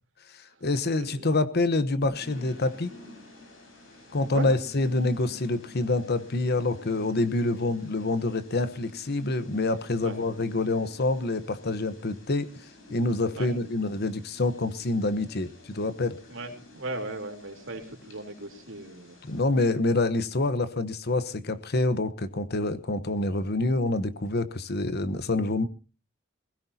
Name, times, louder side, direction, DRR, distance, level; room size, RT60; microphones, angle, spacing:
voice 1, 0.3-2.9 4.1-12.5 12.9-16.2 19.3-25.7, left 2 dB, 55° left, 1.0 m, -27 dB
voice 2, 1.0-1.3 2.1-2.2 4.3-4.5 10.0-10.3 13.3-13.5 16.3-19.2 20.0-20.3, right 2 dB, 70° right, 3.4 m, -38 dB
sound 1, 2.2-19.4, left 1 dB, 75° left, 5.5 m, -50 dB
22.0 x 16.5 x 2.8 m
head